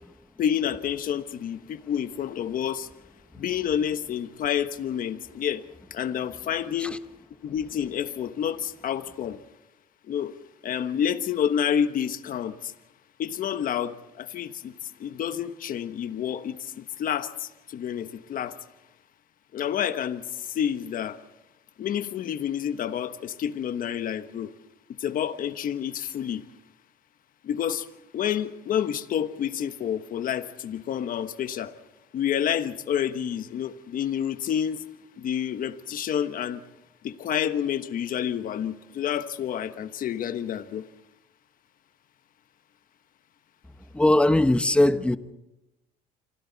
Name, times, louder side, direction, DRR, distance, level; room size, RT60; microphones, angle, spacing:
voice 1, 0.4-2.9 3.4-5.6 5.9-7.0 7.4-9.4 10.1-10.3 10.6-12.7 13.2-14.7 15.0-18.6 19.5-20.2 20.5-21.2 21.8-24.5 25.0-26.4 27.4-27.9 28.1-31.7 32.1-34.8 35.2-36.6 37.0-40.8, left 9 dB, 55° left, 1.2 m, -29 dB
voice 2, 43.9-45.2, left 1 dB, 5° left, 1.0 m, -20 dB
27.0 x 25.5 x 4.1 m
cardioid pair, 110°, 17 cm